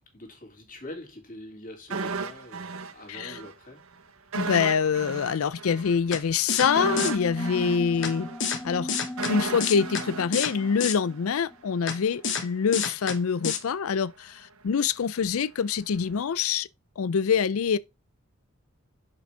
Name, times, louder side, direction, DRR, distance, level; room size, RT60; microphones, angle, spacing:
voice 1, 0.1-3.8, left 1 dB, 40° left, 2.6 m, -44 dB
sound 1, 1.9-3.5 3.8-3.9 4.3-11.4 11.7-11.8, right 4 dB, 75° right, 0.8 m, -35 dB
voice 2, 3.1-3.4 4.4-8.3 8.6-8.9 9.3-16.7 17.0-17.8, left 6 dB, 75° left, 0.4 m, -25 dB
sound 2, 6.1-6.2 6.5-6.7 7.0-7.1 8.0-8.1 8.4-8.6 8.9-9.3 9.6-10.0 10.3-10.5 10.8-11.0 11.9-12.0 12.2-12.4 12.7-13.2 13.4-13.6, left 6 dB, 55° left, 1.3 m, -28 dB
sound 3, 6.6-11.8, left 1 dB, 10° left, 0.5 m, -37 dB
6.7 x 5.4 x 3.3 m
head